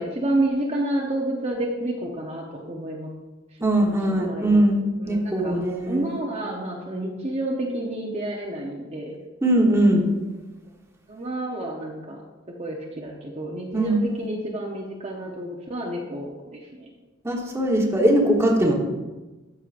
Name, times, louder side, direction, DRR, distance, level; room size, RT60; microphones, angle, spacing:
voice 1, 0.0-3.1 3.8-4.6 5.0-9.2 11.1-12.2 12.5-16.9, right 1 dB, 35° right, -2 dB, 0.9 m, -30 dB
voice 2, 3.6-4.8 5.1-6.1 9.4-10.1 13.7-14.0 17.2-18.7, right 1 dB, 15° right, -1 dB, 1.2 m, -20 dB
13.5 x 6.4 x 2.5 m, 1.2 s
head